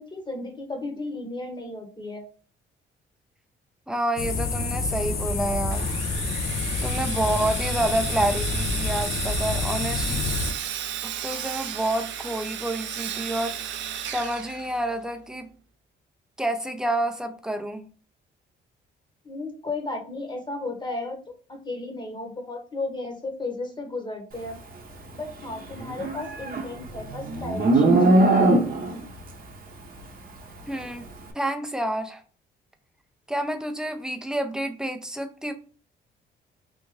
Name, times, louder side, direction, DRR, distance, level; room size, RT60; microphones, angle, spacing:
voice 1, 0.0-2.3 19.2-21.2 21.5-24.6 25.1-28.6, left 2 dB, 20° left, 3 dB, 1.1 m, -34 dB
voice 2, 3.9-5.9 6.8-10.2 11.0-15.5 16.4-17.9 30.7-31.0 31.3-32.2 33.3-35.5, right 1 dB, 5° right, 6 dB, 0.6 m, -28 dB
sound 1, 4.2-10.5, left 3 dB, 55° left, 0.6 m, -28 dB
Sawing, 5.7-15.2, right 10 dB, 70° right, 0.5 m, -34 dB
Livestock farm animals working animals, 25.8-29.0, right 2 dB, 45° right, 0.8 m, -20 dB
3.4 x 2.5 x 3.1 m, 0.40 s
cardioid pair, 90°, 20 cm